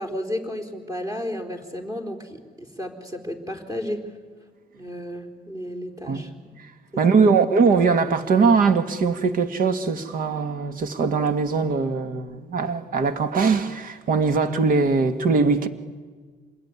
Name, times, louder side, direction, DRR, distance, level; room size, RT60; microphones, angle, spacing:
voice 1, 0.0-4.1 4.7-6.3 7.1-7.4, left 1 dB, 20° right, 4.1 m, -33 dB
voice 2, 7.0-15.7, right 4 dB, 55° right, 1.9 m, -21 dB
27.0 x 20.5 x 9.7 m
cardioid pair, 110°, 17 cm